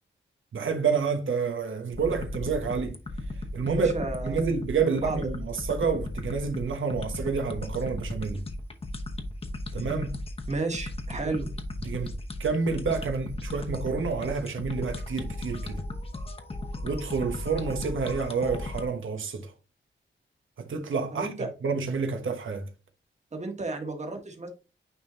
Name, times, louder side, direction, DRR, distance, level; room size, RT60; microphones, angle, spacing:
voice 1, 0.5-3.0 3.5-3.9 4.2-8.4 9.7-10.2 11.2-11.4 11.8-12.1 12.4-15.8 16.8-19.5 20.6-21.3 21.6-22.7, right 5 dB, 85° right, 1.0 m, -29 dB
sound 1, 1.9-18.9, left 1 dB, 30° left, 1.0 m, -36 dB
voice 2, 3.6-4.5 4.8-5.2 10.5-11.5 21.1-21.5 23.3-24.5, right 3 dB, 35° right, 1.5 m, -33 dB
9.4 x 3.6 x 2.8 m
wide cardioid pair, 125°, 20 cm